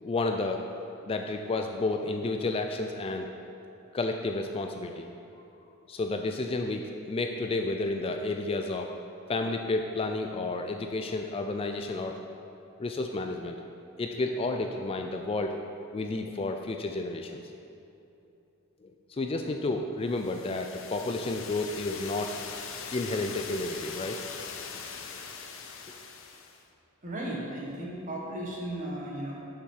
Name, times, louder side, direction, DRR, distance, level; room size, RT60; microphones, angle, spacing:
voice 1, 0.0-0.6 1.0-3.3 3.9-5.1 5.9-8.9 9.3-12.2 12.8-13.6 14.0-15.6 15.9-17.4 19.1-22.3 22.9-24.2, left 2 dB, 25° left, 4 dB, 0.3 m, -31 dB
sound 1, 20.1-26.6, left 6 dB, 60° left, 0.7 m, -41 dB
voice 2, 27.0-29.4, right 1 dB, 35° right, -3 dB, 1.5 m, -35 dB
7.0 x 5.8 x 6.4 m, 2.8 s
head